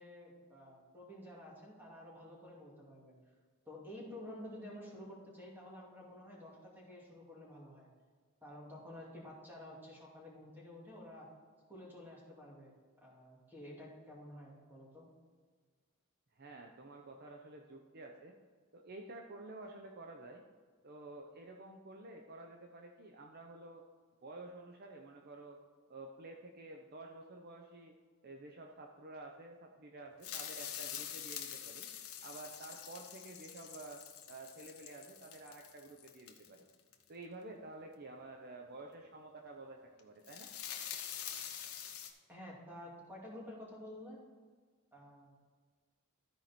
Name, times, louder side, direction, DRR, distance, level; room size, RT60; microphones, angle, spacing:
voice 1, 0.0-3.2 3.6-7.9 8.4-11.3 11.7-15.1 42.3-44.2 44.9-45.3, left 1 dB, 10° right, -4 dB, 2.4 m, -51 dB
voice 2, 16.3-18.3 18.7-20.4 20.8-23.8 24.2-25.6 25.9-27.9 28.2-31.9 32.2-34.0 34.3-36.7 37.1-40.5, right 2 dB, 50° right, 2 dB, 0.7 m, -51 dB
sound 1, 30.2-36.9 40.0-42.1, left 9 dB, 85° left, 1.0 m, -45 dB
13.0 x 4.8 x 4.3 m, 1.5 s
head